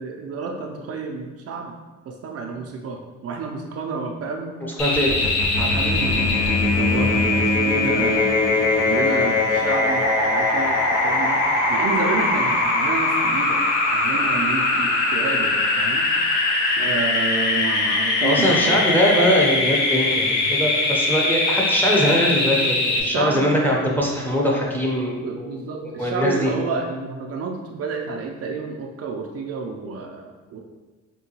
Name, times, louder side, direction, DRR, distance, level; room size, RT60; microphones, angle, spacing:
voice 1, 0.0-1.7 2.0-4.6 5.6-11.4 11.7-13.6 13.9-16.1 16.8-18.8 23.0-23.6 25.2-30.6, right 4 dB, 55° right, 1 dB, 0.4 m, -30 dB
sound 1, 4.8-23.0, left 2 dB, 80° left, 0.7 m, -21 dB
voice 2, 4.8-5.3 18.2-25.6 26.0-26.5, equal, 5° left, -3 dB, 0.6 m, -21 dB
3.6 x 2.2 x 2.8 m, 1.3 s
cardioid pair, 90°, 30 cm